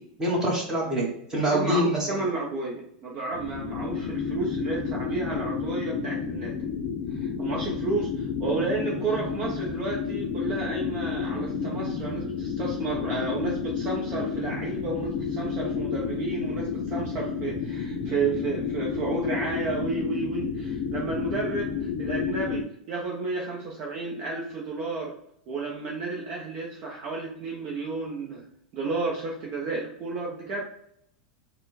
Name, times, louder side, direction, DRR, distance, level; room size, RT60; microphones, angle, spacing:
voice 1, 0.2-2.2, equal, 10° right, -3 dB, 1.1 m, -25 dB
voice 2, 1.5-6.6 7.1-25.1 25.5-28.5 28.7-30.6, right 4 dB, 35° right, -2 dB, 0.7 m, -32 dB
sound 1, 3.3-22.6, left 6 dB, 35° left, 0.4 m, -31 dB
4.2 x 2.2 x 4.1 m, 0.73 s
supercardioid pair, 155°, 5 cm